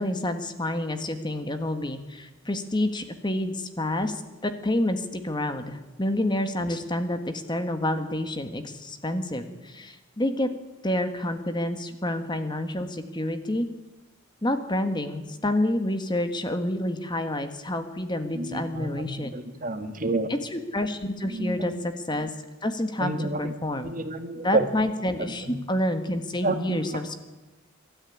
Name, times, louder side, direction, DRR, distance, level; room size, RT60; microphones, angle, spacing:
voice 1, 0.0-10.5 10.8-13.7 14.4-19.3 20.3-22.3 22.6-23.9 24.4-27.1, left 1 dB, 20° left, 8 dB, 1.5 m, -28 dB
voice 2, 18.4-20.3 21.2-21.7 23.0-23.5 23.8-24.7 26.4-26.8, right 2 dB, 40° right, 8 dB, 1.9 m, -29 dB
24.0 x 13.0 x 10.0 m, 1.1 s
head